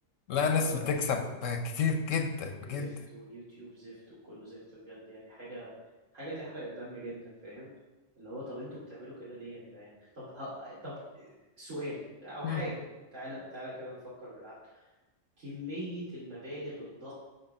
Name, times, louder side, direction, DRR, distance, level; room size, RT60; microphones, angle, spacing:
voice 1, 0.3-2.9 12.4-12.6, left 5 dB, 80° left, 5 dB, 1.2 m, -30 dB
voice 2, 2.7-5.7 6.1-7.7 8.2-12.8 13.1-14.8 15.4-17.1, equal, 80° right, -10 dB, 2.9 m, -42 dB
6.7 x 5.7 x 5.4 m, 1.1 s
omnidirectional pair, 1.3 m